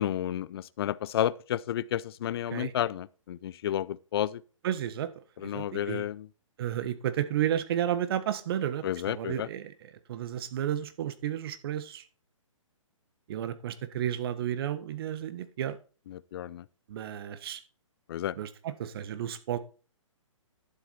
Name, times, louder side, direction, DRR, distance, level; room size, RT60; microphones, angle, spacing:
voice 1, 0.0-4.4 5.4-6.3 8.8-9.5 16.1-16.6 18.1-18.3, left 11 dB, 50° left, 0.6 m, -31 dB
voice 2, 4.6-5.1 5.4-6.0 6.6-12.0 13.3-15.8 16.9-17.6 18.4-19.6, right 10 dB, 45° right, 1.4 m, -32 dB
11.5 x 7.5 x 4.3 m
hypercardioid pair, 140°, 17 cm